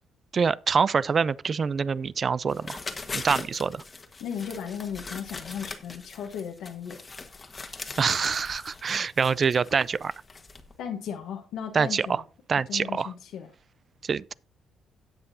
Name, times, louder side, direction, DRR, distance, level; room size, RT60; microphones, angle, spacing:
voice 1, 0.3-2.8 3.1-3.8 8.0-10.1 11.7-12.2 12.5-13.1 14.0-14.3, right 5 dB, 45° right, 0.3 m, -25 dB
sound 1, 2.5-10.7, left 3 dB, 30° left, 1.3 m, -40 dB
voice 2, 4.2-7.0 10.8-12.2 12.7-13.5, left 8 dB, 80° left, 1.0 m, -36 dB
17.5 x 5.8 x 2.7 m
cardioid pair, 90°, 0 cm